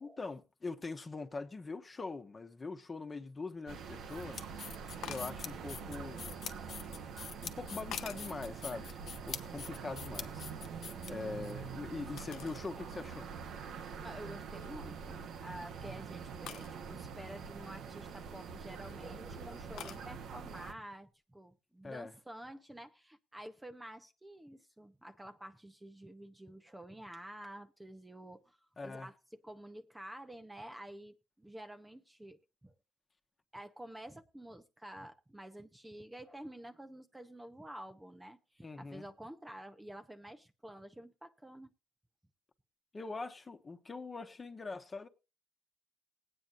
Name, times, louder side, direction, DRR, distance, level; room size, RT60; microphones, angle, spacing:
voice 1, 0.0-4.4 5.0-6.3 7.4-10.5 11.1-13.3 21.8-22.1 28.8-29.1 38.6-39.0 42.9-45.1, left 3 dB, 30° left, 1.1 m, -43 dB
sound 1, 3.7-20.7, right 6 dB, 75° right, 1.1 m, -45 dB
sound 2, 4.1-11.5, left 7 dB, 60° left, 1.0 m, -45 dB
sound 3, 5.0-5.4 6.1-6.9 7.6-8.4 8.8-9.9 10.2-11.5 12.2-12.7 13.2-13.3 13.9-14.1 14.5-14.9 16.5-16.7 18.4-18.9 19.8-20.1, left 10 dB, 80° left, 0.6 m, -48 dB
voice 2, 14.0-28.6 28.8-29.1 29.4-32.7 33.5-41.7, right 1 dB, 10° right, 0.8 m, -50 dB
20.0 x 8.9 x 2.6 m
cardioid pair, 90°, 0 cm